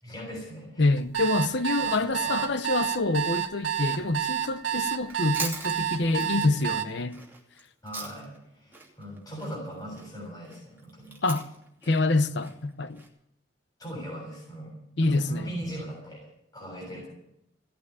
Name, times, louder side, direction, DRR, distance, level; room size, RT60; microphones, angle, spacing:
voice 1, 0.0-0.9 1.8-2.4 7.8-11.2 13.8-16.2 16.5-17.1, right 1 dB, 20° left, 6.9 m, -39 dB
voice 2, 0.8-7.2 11.2-11.5 11.8-13.0 15.0-15.5, left 2 dB, 60° left, 0.8 m, -26 dB
sound 1, 1.0-6.8, right 10 dB, 80° right, 1.7 m, -29 dB
Chewing mastication, 5.0-8.4 8.7-13.1, right 3 dB, 10° right, 2.8 m, -41 dB
17.5 x 8.6 x 9.7 m
head